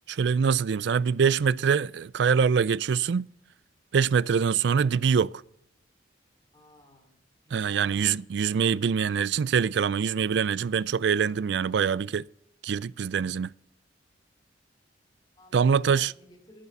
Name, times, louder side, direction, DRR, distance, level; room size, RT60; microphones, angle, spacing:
voice 1, 0.1-3.3 3.9-5.3 7.5-12.2 12.6-13.5 15.5-16.1, right 6 dB, 65° right, 0.4 m, -24 dB
voice 2, 6.5-7.2 7.4-8.1 15.2-16.7, left 1 dB, 20° left, 3.2 m, -55 dB
12.0 x 9.6 x 5.6 m
head